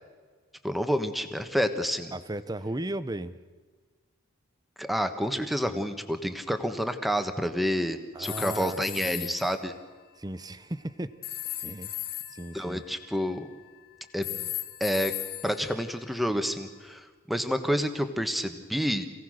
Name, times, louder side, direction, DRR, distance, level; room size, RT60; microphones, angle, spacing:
voice 1, 0.6-2.1 4.8-9.7 12.5-13.5 14.1-14.5 14.8-15.1 15.4-19.1, equal, ahead, 7 dB, 1.3 m, -29 dB
voice 2, 2.1-3.4 8.1-9.3 10.2-11.2 11.6-12.0 12.3-12.8, right 1 dB, 15° right, 14 dB, 0.7 m, -36 dB
sound 1, 8.2-9.5 11.2-13.7 14.2-16.5, left 12 dB, 45° left, 1.3 m, -37 dB
27.5 x 17.5 x 6.5 m, 1.5 s
head